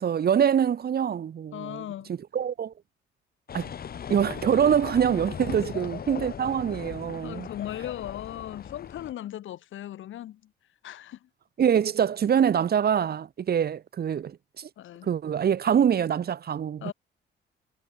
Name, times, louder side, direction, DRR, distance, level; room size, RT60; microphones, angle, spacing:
voice 1, 0.0-1.8 2.3-2.7 3.5-3.7 4.1-7.5 11.6-14.7 15.0-16.9, right 8 dB, 50° right, 1.6 m, -24 dB
voice 2, 1.5-2.1 5.6-5.7 7.2-10.5 10.8-11.3 14.8-15.1 16.8-16.9, left 12 dB, 80° left, 7.4 m, -38 dB
sound 1, 3.5-9.1, left 8 dB, 50° left, 1.7 m, -38 dB
cardioid pair, 90°, 20 cm